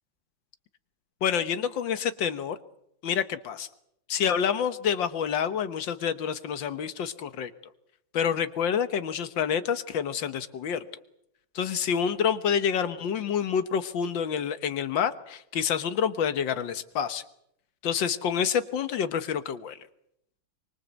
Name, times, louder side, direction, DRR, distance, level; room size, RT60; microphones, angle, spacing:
voice 1, 1.2-2.6 3.0-3.7 4.1-7.5 8.1-10.8 11.6-17.2 17.8-19.8, left 7 dB, 90° left, 11 dB, 1.9 m, -28 dB
24.5 x 24.5 x 8.1 m, 0.75 s
omnidirectional pair, 2.0 m